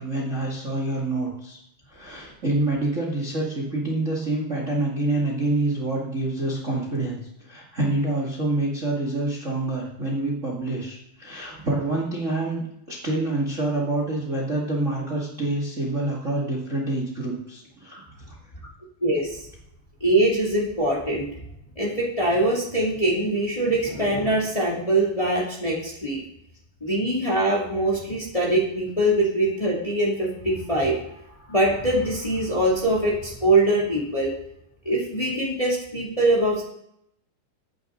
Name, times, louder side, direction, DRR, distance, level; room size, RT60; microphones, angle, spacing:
voice 1, 0.0-1.6 1.9-7.2 7.4-18.1, right 2 dB, 85° right, -3 dB, 0.6 m, -27 dB
voice 2, 19.0-19.5 20.0-21.3 21.7-26.2 26.8-31.0 31.5-34.3 34.8-36.6, right 1 dB, 50° left, -4 dB, 0.4 m, -23 dB
20.0 x 9.6 x 3.9 m, 0.77 s
omnidirectional pair, 5.7 m